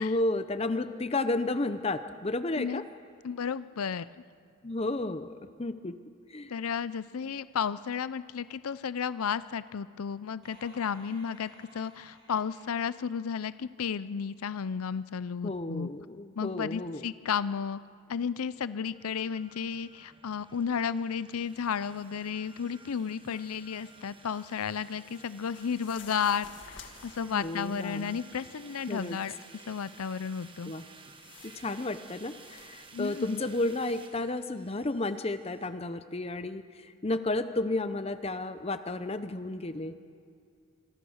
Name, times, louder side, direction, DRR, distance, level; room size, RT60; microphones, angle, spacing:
voice 1, 0.0-2.8 4.6-6.0 6.3-6.5 15.4-17.1 27.2-28.2 28.9-29.2 30.7-30.8 31.4-40.1, left 2 dB, 25° left, 11 dB, 0.6 m, -32 dB
voice 2, 3.2-4.2 6.5-15.9 16.4-17.8 18.1-29.3 29.7-30.7 32.9-33.4, left 6 dB, 90° left, 16 dB, 0.5 m, -33 dB
sound 1, 10.4-14.1, right 1 dB, 50° right, 8.0 m, -57 dB
sound 2, 18.9-35.7, right 4 dB, 25° right, 1.2 m, -54 dB
sound 3, 25.5-28.2 28.6-29.2 30.7-32.7, left 6 dB, 55° left, 1.9 m, -52 dB
26.0 x 22.5 x 6.4 m, 2.3 s
head